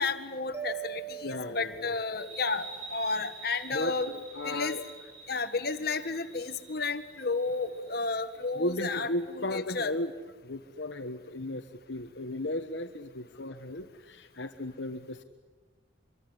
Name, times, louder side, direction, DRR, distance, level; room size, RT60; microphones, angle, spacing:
voice 1, 0.0-4.1 4.4-4.7 5.3-9.1 9.4-9.9, left 4 dB, 55° left, 7 dB, 1.7 m, -32 dB
Mallet percussion, 0.5-2.6, right 10 dB, 15° right, 2.3 m, -41 dB
voice 2, 1.2-2.0 3.7-4.8 8.5-10.1 10.4-15.2, left 1 dB, 70° left, 4 dB, 1.3 m, -35 dB
sound 1, 2.2-9.4, right 4 dB, 75° right, 6.7 m, -48 dB
25.5 x 23.5 x 9.8 m, 1.3 s
head